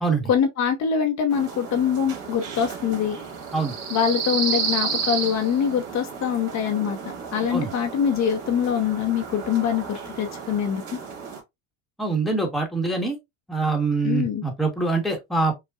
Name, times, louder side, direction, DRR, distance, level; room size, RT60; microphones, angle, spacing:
voice 1, 0.3-3.2 3.9-7.0 7.3-11.0 14.0-14.4, left 8 dB, 45° left, 0.8 m, -24 dB
sound 1, 1.3-11.4, right 6 dB, 65° right, 2.0 m, -32 dB
voice 2, 12.0-13.2 13.5-15.5, right 3 dB, ahead, 1.1 m, -24 dB
5.5 x 2.2 x 2.3 m
cardioid pair, 120°, 39 cm